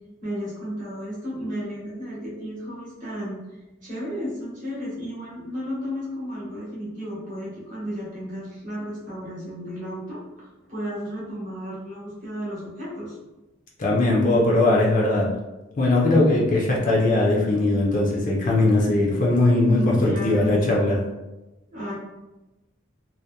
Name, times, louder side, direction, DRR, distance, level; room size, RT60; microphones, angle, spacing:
voice 1, 0.2-3.4 3.8-13.2 19.7-20.8 21.7-21.9, equal, 40° right, -7 dB, 1.0 m, -33 dB
voice 2, 13.8-15.3 15.8-21.0, left 2 dB, 40° left, -3 dB, 0.4 m, -20 dB
2.7 x 2.1 x 2.2 m, 1.0 s
head